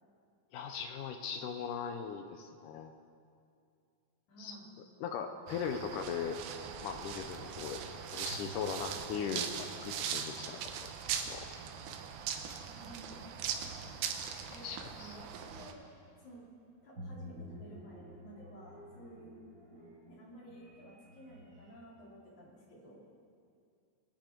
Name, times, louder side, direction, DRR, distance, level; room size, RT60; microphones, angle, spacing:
voice 1, 0.5-2.9 4.4-4.6 5.0-6.4 6.8-7.8 8.1-10.6 11.3-11.4 14.5-15.2, left 7 dB, 80° left, 6 dB, 1.9 m, -39 dB
voice 2, 4.3-4.7 12.7-13.2 14.5-15.8 16.2-16.5 16.8-19.4 20.1-23.0, right 1 dB, 55° left, -5 dB, 4.4 m, -53 dB
sound 1, 5.5-15.7, right 8 dB, 85° right, 2.7 m, -40 dB
sound 2, 6.6-7.5 8.3-10.9 12.6-12.9 13.2-16.2 16.9-21.7, equal, 35° right, 3.1 m, -53 dB
22.0 x 9.7 x 4.5 m, 2.4 s
omnidirectional pair, 4.2 m